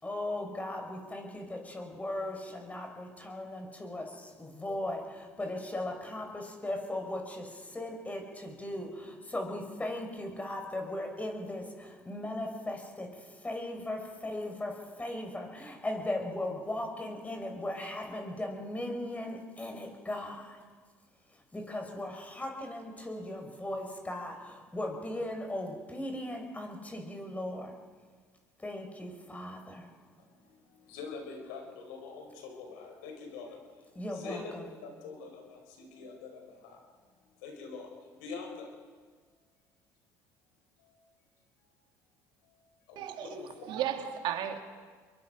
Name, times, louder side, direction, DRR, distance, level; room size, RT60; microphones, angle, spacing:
voice 1, 0.0-20.6 21.3-27.7 28.6-29.9 33.9-34.7, left 1 dB, 15° left, 5.1 m, -38 dB
voice 2, 30.2-33.8 34.1-36.8 37.4-38.7 40.8-40.9 42.4-42.6 42.9-43.8, left 4 dB, 80° left, 5.0 m, -45 dB
voice 3, 43.0-44.6, right 10 dB, 65° right, 2.3 m, -35 dB
28.0 x 22.5 x 5.2 m
hypercardioid pair, 70°, 9 cm